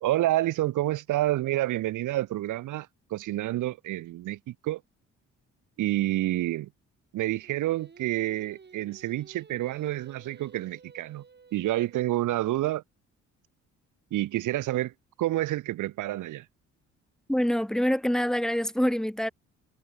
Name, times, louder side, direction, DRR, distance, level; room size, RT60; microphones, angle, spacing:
voice 1, 0.0-4.8 5.8-6.7 7.1-11.2 11.5-12.8 14.1-16.5, right 15 dB, 85° right, 2.5 m, -28 dB
Singing, 7.4-12.6, right 5 dB, 35° right, 5.2 m, -53 dB
voice 2, 17.3-19.3, equal, ahead, 1.9 m, -25 dB
cardioid pair, 90°, 30 cm